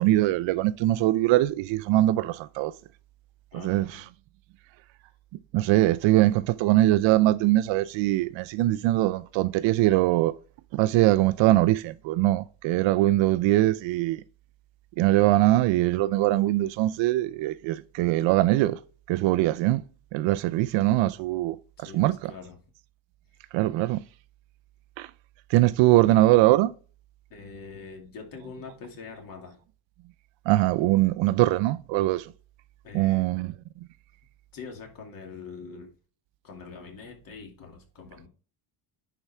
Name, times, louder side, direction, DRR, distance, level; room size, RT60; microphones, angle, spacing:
voice 1, 0.0-2.7 3.5-4.0 5.5-10.3 10.7-14.2 15.0-18.8 19.1-19.8 20.1-21.6 21.8-22.3 23.5-24.0 25.0-25.1 25.5-26.7 30.5-32.3 32.9-33.5, right 16 dB, 65° right, 0.5 m, -22 dB
voice 2, 3.5-4.0 21.8-22.6 27.3-29.6 32.8-33.4 34.5-35.9 36.4-38.3, left 5 dB, 45° left, 2.5 m, -43 dB
10.0 x 4.7 x 3.5 m
cardioid pair, 150°, 48 cm